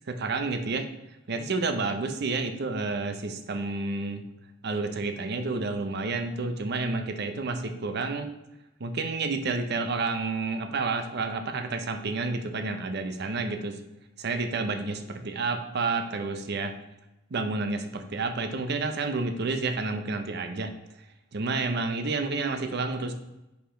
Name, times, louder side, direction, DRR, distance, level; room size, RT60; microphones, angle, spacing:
voice 1, 0.1-0.9 1.3-4.2 4.6-8.3 8.8-13.8 14.2-16.7 17.3-20.7 21.3-23.1, right 3 dB, 55° right, 8 dB, 0.6 m, -30 dB
5.0 x 5.0 x 3.7 m, 0.96 s
head